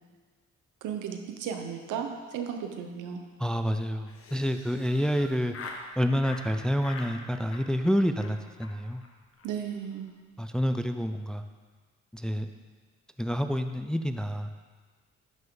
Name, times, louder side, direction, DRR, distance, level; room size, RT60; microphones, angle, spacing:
voice 1, 0.8-3.2 9.4-10.1, right 7 dB, 90° right, 5 dB, 1.0 m, -35 dB
voice 2, 3.4-5.6 6.0-9.0 10.4-11.4 12.1-12.5 13.2-14.5, equal, 5° left, 8 dB, 0.4 m, -28 dB
Laughter, 4.0-5.8 6.2-6.5 6.8-7.1 7.4-7.9 8.2-8.3 8.6-8.7 9.0-9.1 9.3-9.5 9.7-10.1, left 3 dB, 50° left, 1.3 m, -44 dB
10.5 x 5.7 x 3.9 m, 1.4 s
cardioid pair, 90°, 30 cm